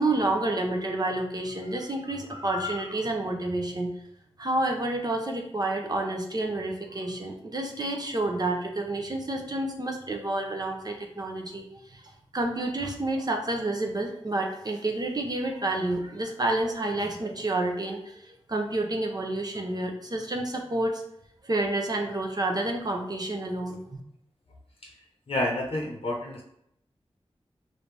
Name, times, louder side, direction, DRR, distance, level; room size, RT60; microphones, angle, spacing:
voice 1, 0.0-3.9 4.4-11.6 11.9-12.0 12.3-21.0 21.4-24.0, right 2 dB, 40° right, 2 dB, 0.6 m, -29 dB
voice 2, 25.3-26.4, left 1 dB, 65° left, -1 dB, 0.7 m, -29 dB
4.8 x 2.7 x 3.2 m, 0.76 s
wide cardioid pair, 60°, 10 cm